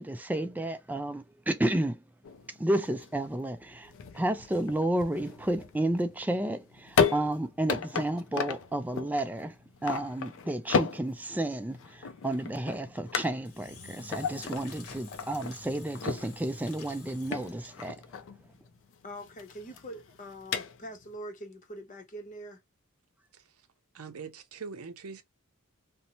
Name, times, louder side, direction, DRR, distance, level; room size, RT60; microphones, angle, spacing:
voice 1, 0.0-2.0 2.5-9.6 9.8-18.0, right 1 dB, 5° right, 0.3 m, -31 dB
sound 1, 2.2-21.1, left 6 dB, 60° left, 0.4 m, -35 dB
Engine / Drill, 13.4-18.0, left 3 dB, 80° left, 0.9 m, -48 dB
voice 2, 19.0-22.6, equal, 35° left, 0.7 m, -43 dB
voice 3, 23.3-23.7 23.9-25.2, right 5 dB, 70° right, 0.6 m, -43 dB
2.7 x 2.1 x 2.8 m
head